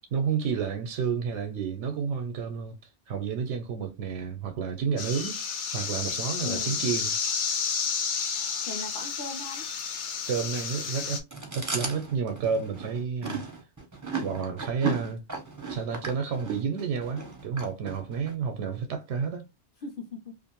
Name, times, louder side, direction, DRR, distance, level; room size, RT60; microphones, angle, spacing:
voice 1, 0.1-2.8 3.1-5.4 5.7-7.2 10.3-11.3 11.5-13.5 14.2-15.2 15.7-19.5, right 6 dB, 90° right, 0.9 m, -30 dB
sound 1, 5.0-11.2, left 6 dB, 90° left, 0.9 m, -31 dB
voice 2, 6.4-6.9 8.6-9.7 19.8-20.4, left 3 dB, 55° left, 0.7 m, -39 dB
Chewing mastication, 11.3-18.3, right 3 dB, 25° right, 0.5 m, -35 dB
2.5 x 2.4 x 2.8 m
omnidirectional pair, 1.2 m